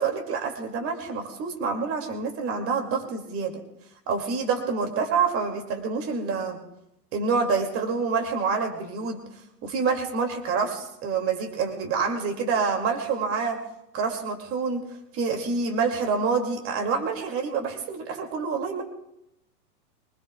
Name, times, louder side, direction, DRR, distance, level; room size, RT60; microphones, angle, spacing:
voice 1, 0.0-3.5 4.1-6.6 7.1-9.2 9.6-13.6 13.9-14.9 15.1-18.8, right 5 dB, 30° right, 4 dB, 2.5 m, -27 dB
24.5 x 19.5 x 2.3 m, 0.84 s
hypercardioid pair, 120°, 47 cm